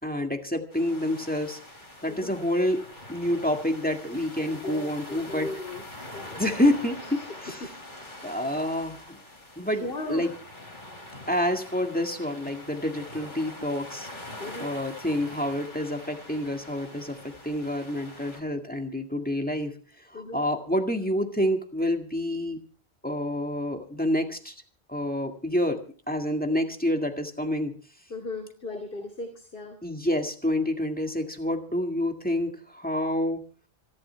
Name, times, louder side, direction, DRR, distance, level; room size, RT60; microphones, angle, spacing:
voice 1, 0.0-1.6 2.0-2.8 3.1-5.5 6.4-7.7 8.2-9.2 9.6-10.3 11.3-14.1 14.6-19.7 20.1-22.6 23.0-24.5 24.9-25.8 26.1-27.7 28.7-28.8 29.8-33.4, left 1 dB, 10° left, 4 dB, 1.9 m, -28 dB
sound 1, 0.7-18.4, left 1 dB, 50° left, 4.0 m, -44 dB
voice 2, 4.5-5.8 6.1-6.4 7.2-7.3 7.6-7.7 8.2-8.4 9.8-10.4 14.4-14.7 20.1-20.4 28.1-29.8, left 2 dB, 65° left, 3 dB, 2.7 m, -37 dB
26.5 x 12.0 x 3.4 m, 0.40 s
omnidirectional pair, 1.0 m